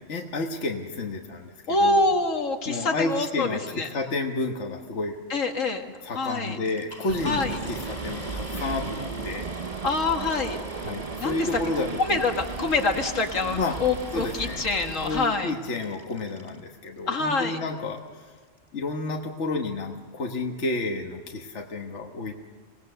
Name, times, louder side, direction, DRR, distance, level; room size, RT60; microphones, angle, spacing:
voice 1, 0.1-2.0 2.7-5.2 6.0-9.5 10.8-12.3 13.5-13.8 14.1-14.6 15.0-18.0 18.7-22.4, left 3 dB, 60° left, 2 dB, 1.6 m, -31 dB
voice 2, 1.7-3.9 5.3-5.8 6.2-6.6 7.3-7.5 9.8-10.6 11.2-11.5 12.0-15.5 17.1-17.6, left 3 dB, 80° left, 4 dB, 2.1 m, -25 dB
sound 1, 6.6-16.6 17.4-17.5 18.0-18.1 18.3-18.6, equal, 10° left, 2.7 m, -44 dB
sound 2, 7.1-15.3, right 4 dB, 35° right, 0.8 m, -35 dB
26.0 x 18.5 x 6.7 m, 1.5 s
omnidirectional pair, 1.3 m